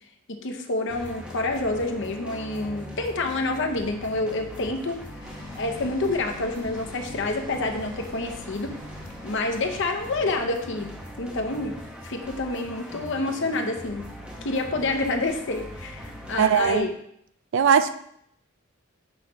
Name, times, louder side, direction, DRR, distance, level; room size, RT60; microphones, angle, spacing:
voice 1, 0.3-5.0 5.6-8.7 9.2-10.9 11.2-11.8 12.0-14.1 14.4-16.9, left 2 dB, 55° left, 5 dB, 0.7 m, -28 dB
sound 1, 0.9-16.8, equal, 5° right, 0.8 m, -41 dB
sound 2, 5.2-10.5, left 2 dB, 20° right, 1.6 m, -46 dB
voice 2, 16.4-16.9 17.5-17.9, right 7 dB, 55° right, 12 dB, 0.3 m, -19 dB
6.3 x 3.1 x 5.7 m, 0.70 s
head